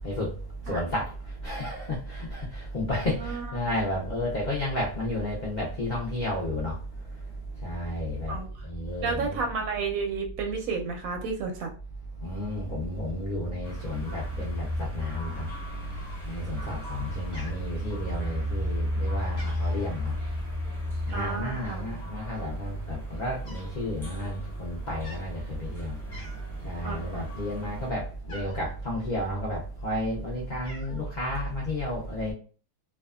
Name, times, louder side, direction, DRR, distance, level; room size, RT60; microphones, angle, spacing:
voice 1, 0.7-1.1 1.4-6.7 7.6-8.3 8.6-9.4 12.2-15.5 16.3-20.1 21.1-25.9 26.6-32.3, left 1 dB, 85° left, 0.4 m, -31 dB
voice 2, 9.0-11.7 21.1-21.8 26.8-27.2, right 4 dB, 70° right, 0.9 m, -31 dB
sound 1, 13.6-27.9, left 1 dB, ahead, 0.8 m, -35 dB
Cat, 15.9-16.5 16.8-17.1 17.3-18.3 18.8-19.0 19.2-19.9 21.1-21.5 22.3-22.4 22.6-23.8 24.0-24.3 24.9-25.3 25.7-25.8 26.1-26.6 27.0-28.7 29.5-30.1 30.3-31.0, left 1 dB, 35° left, 0.7 m, -48 dB
2.7 x 2.3 x 2.3 m
omnidirectional pair, 1.7 m